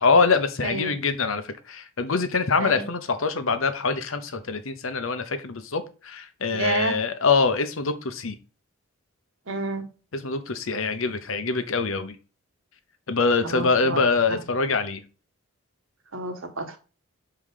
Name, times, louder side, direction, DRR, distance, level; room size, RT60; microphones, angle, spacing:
voice 1, 0.0-8.4 10.1-12.2 13.1-15.0, left 4 dB, 75° left, 0.9 m, -24 dB
voice 2, 6.5-7.0 9.5-9.9 13.4-14.0 16.1-16.8, right 3 dB, 70° right, 1.3 m, -30 dB
5.7 x 4.9 x 4.9 m
head